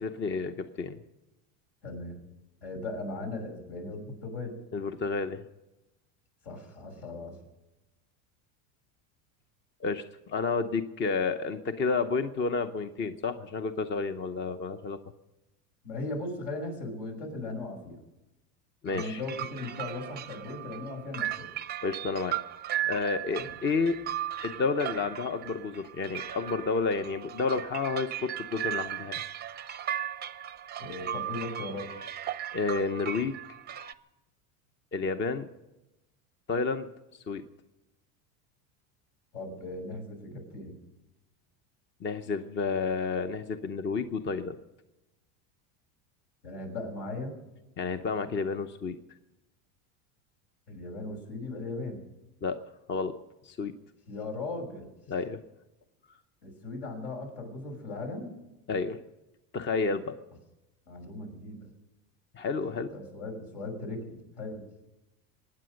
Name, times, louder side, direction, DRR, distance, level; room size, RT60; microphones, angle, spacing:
voice 1, 0.0-1.0 4.7-5.4 9.8-15.0 18.8-19.2 21.8-22.4 22.8-24.0 24.4-29.2 32.5-33.4 34.9-35.5 36.5-37.4 42.0-44.6 47.8-49.0 52.4-52.6 52.9-53.1 53.4-53.7 55.1-55.4 58.7-59.0 59.5-60.2 62.3-62.9, left 4 dB, 25° left, 10 dB, 0.8 m, -30 dB
voice 2, 1.8-2.2 2.6-4.5 6.4-7.4 15.8-18.0 18.9-21.5 23.4-23.5 30.8-31.9 39.3-40.8 46.4-47.4 50.7-52.0 54.1-54.9 56.4-58.3 60.9-61.7 62.9-64.7, left 2 dB, 70° left, 2 dB, 6.0 m, -38 dB
sound 1, 18.9-33.9, right 11 dB, 25° right, 0.6 m, -37 dB
23.5 x 9.6 x 6.4 m, 0.98 s
supercardioid pair, 120°, 42 cm